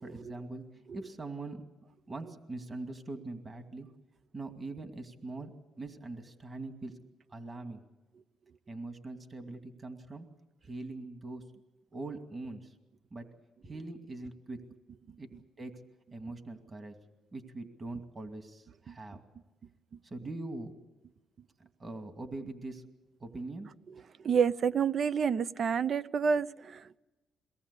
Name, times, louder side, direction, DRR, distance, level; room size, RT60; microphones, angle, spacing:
voice 1, 0.0-1.6 2.1-3.9 4.3-6.9 7.3-7.9 8.7-10.3 10.6-11.4 11.9-12.7 13.1-13.3 13.6-14.6 15.2-15.3 15.6-15.8 16.1-17.0 17.3-19.2 20.0-20.7 21.8-22.8 23.2-24.0, right 2 dB, 30° right, 6 dB, 2.4 m, -42 dB
voice 2, 24.2-27.0, right 6 dB, 50° right, 15 dB, 0.7 m, -28 dB
23.0 x 18.5 x 8.3 m, 1.1 s
cardioid pair, 90°, 0 cm